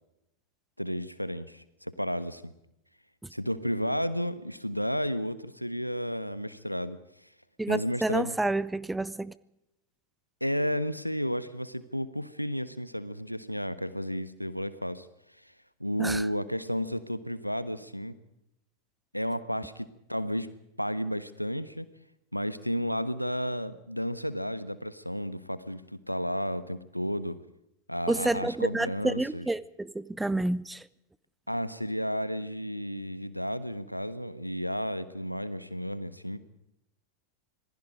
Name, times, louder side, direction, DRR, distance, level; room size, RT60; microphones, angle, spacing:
voice 1, 0.8-2.5 3.3-7.0 7.7-8.4 10.4-15.1 15.8-18.2 19.1-20.5 20.8-21.9 22.3-27.4 27.9-29.5 31.5-36.4, equal, 90° left, 1.3 m, -32 dB
voice 2, 7.6-9.3 16.0-16.3 28.1-30.8, right 2 dB, 5° right, 0.7 m, -29 dB
27.0 x 20.0 x 5.0 m
figure-of-eight pair, 90°, 0 cm